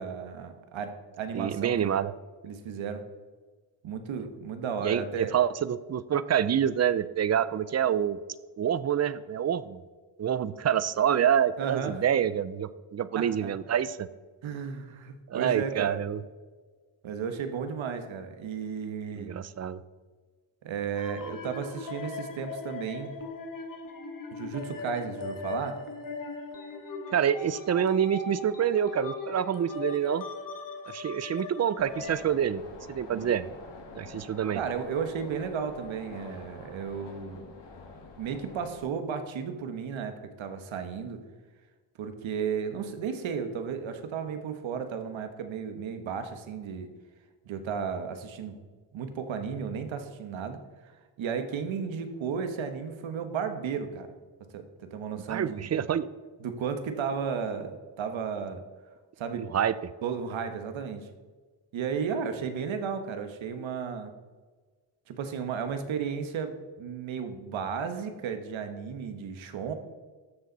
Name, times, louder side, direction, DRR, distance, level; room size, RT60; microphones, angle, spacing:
voice 1, 0.0-1.9 2.4-3.1 3.8-5.3 11.6-12.0 13.1-13.6 14.4-16.0 17.0-19.3 20.6-23.2 24.3-25.8 34.5-37.4 38.2-41.2 42.0-46.9 47.4-48.6 48.9-50.9 51.2-54.1 54.5-55.7 56.4-58.6 59.2-59.5 60.0-61.1 61.7-64.1 65.1-69.7, right 6 dB, 80° right, 8 dB, 1.4 m, -34 dB
voice 2, 1.3-2.1 4.8-8.2 8.6-9.8 10.2-14.1 15.3-16.2 19.2-19.8 27.1-30.3 30.9-32.6 32.9-33.4 34.0-34.6 55.3-56.1 59.3-59.9, right 9 dB, 35° right, 16 dB, 0.4 m, -27 dB
sound 1, 21.0-32.4, left 4 dB, 45° left, 1.5 m, -39 dB
sound 2, 31.8-38.8, left 3 dB, 65° left, 2.1 m, -46 dB
13.0 x 7.0 x 4.1 m, 1.4 s
cardioid pair, 125°, 46 cm